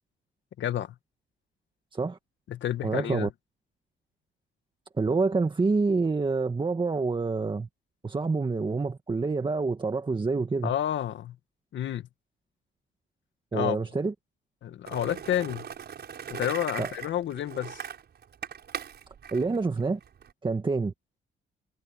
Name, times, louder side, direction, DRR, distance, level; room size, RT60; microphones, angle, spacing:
voice 1, 0.6-0.9 2.5-3.3 10.6-11.4 11.7-12.1 13.5-13.8 14.6-15.7 16.3-17.8, left 11 dB, 70° left, 1.8 m, -30 dB
voice 2, 2.8-3.3 5.0-7.7 8.0-10.7 13.5-14.1 16.8-16.9 19.3-20.0 20.4-20.9, right 4 dB, 25° right, 1.8 m, -27 dB
Skateboard, 14.9-20.3, right 8 dB, 55° right, 6.7 m, -40 dB
cardioid pair, 90°, 20 cm